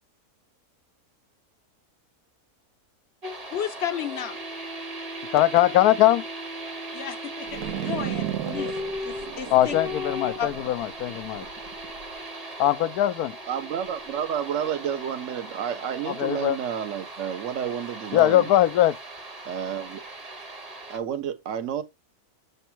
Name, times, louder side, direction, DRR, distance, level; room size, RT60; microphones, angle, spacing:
sound 1, 3.2-21.0, equal, 30° right, 1.1 m, -38 dB
voice 1, 3.5-4.4 6.9-8.7 9.0-9.8 10.4-10.5, left 9 dB, 55° left, 0.9 m, -33 dB
voice 2, 5.3-6.2 9.5-11.4 12.6-13.3 16.1-16.6 18.1-18.9, left 13 dB, 80° left, 1.1 m, -21 dB
sound 2, 7.5-12.1, right 10 dB, 75° right, 1.2 m, -34 dB
voice 3, 13.5-18.5 19.4-20.0 20.9-21.8, right 8 dB, 60° right, 1.2 m, -30 dB
7.1 x 3.4 x 4.5 m
omnidirectional pair, 1.6 m